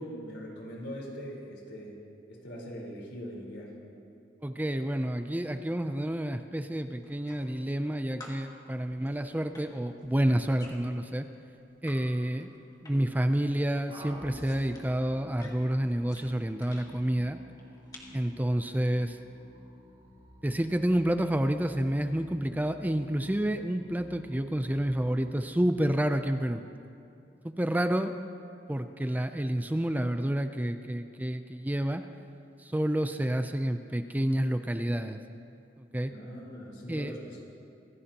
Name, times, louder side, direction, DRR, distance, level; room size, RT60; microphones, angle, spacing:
voice 1, 0.0-1.9 2.3-3.7 36.1-37.4, equal, 75° left, -3 dB, 4.1 m, -41 dB
voice 2, 4.4-11.3 11.8-12.5 12.8-17.4 18.1-19.2 20.4-26.6 27.4-28.1 28.7-32.0 32.6-35.2 35.8-36.1 36.9-37.1, right 1 dB, 10° right, 8 dB, 0.4 m, -29 dB
sound 1, 7.0-7.9 8.2-12.0 12.3-13.2 13.5-16.9 17.5-18.2, left 2 dB, 20° left, 2.2 m, -52 dB
sound 2, 13.9-26.7, equal, 35° right, 2.5 m, -51 dB
25.5 x 16.0 x 2.9 m, 2.5 s
head